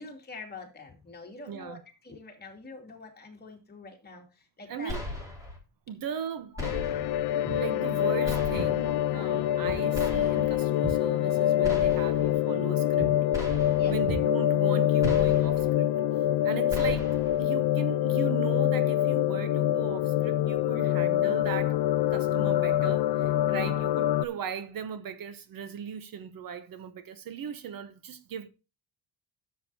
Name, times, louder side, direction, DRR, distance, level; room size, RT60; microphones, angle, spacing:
voice 1, 0.0-4.9 6.5-7.3 13.6-14.0 23.5-23.8, left 3 dB, 25° left, 2.6 m, -46 dB
voice 2, 1.5-1.8 4.7-5.0 5.9-6.5 7.5-13.1 13.9-15.9 16.4-21.8 22.1-28.5, right 8 dB, 55° right, 1.0 m, -38 dB
sound 1, 4.9-5.6 6.6-7.3 8.2-8.9 9.9-10.6 11.6-12.3 13.3-14.0 15.0-15.7 16.7-17.4, left 2 dB, 10° right, 3.1 m, -37 dB
sound 2, 6.6-24.3, left 12 dB, 65° left, 0.7 m, -25 dB
Walk footsteps, 7.4-7.7 8.5-8.8 9.6-9.9 10.2-11.6 11.9-12.1 12.5-12.7 13.0-13.2 13.5-13.7 14.0-14.3 15.0-15.7, right 3 dB, 75° right, 5.1 m, -36 dB
12.5 x 7.5 x 2.7 m
cardioid pair, 150°, 41 cm